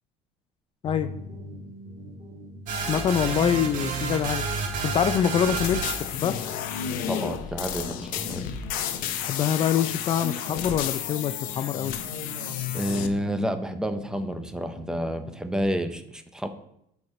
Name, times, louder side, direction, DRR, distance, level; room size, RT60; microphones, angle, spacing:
sound 1, 0.8-15.6, right 1 dB, 35° right, 1.9 m, -44 dB
sound 2, 2.7-6.2, right 4 dB, 60° right, 1.6 m, -30 dB
voice 1, 2.9-4.4 4.8-6.3 9.2-11.9, left 9 dB, 35° left, 10 dB, 0.4 m, -25 dB
sound 3, 5.2-13.1, left 9 dB, 65° left, 0.7 m, -32 dB
voice 2, 7.1-8.4 12.7-16.5, equal, 5° right, 8 dB, 0.6 m, -29 dB
9.9 x 4.8 x 4.2 m, 0.76 s
cardioid pair, 130°, 15 cm